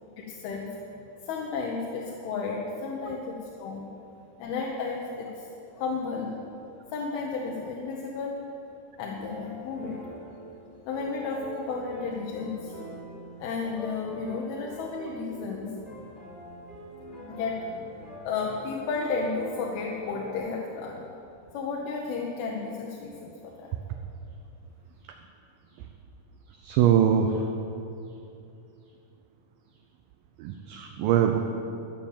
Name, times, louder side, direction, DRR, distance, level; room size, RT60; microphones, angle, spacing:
voice 1, 0.3-0.7 1.2-3.9 4.4-5.5 5.7-6.4 6.9-8.5 9.0-10.0 10.9-12.8 13.4-15.7 17.3-17.6 18.2-21.1 21.5-23.7, left 4 dB, 75° left, -2 dB, 2.7 m, -33 dB
sound 1, 9.1-20.4, right 1 dB, 15° left, 1.9 m, -44 dB
voice 2, 26.5-27.5 30.4-31.4, right 9 dB, 85° right, 5 dB, 2.0 m, -24 dB
13.5 x 7.1 x 7.3 m, 2.7 s
omnidirectional pair, 4.7 m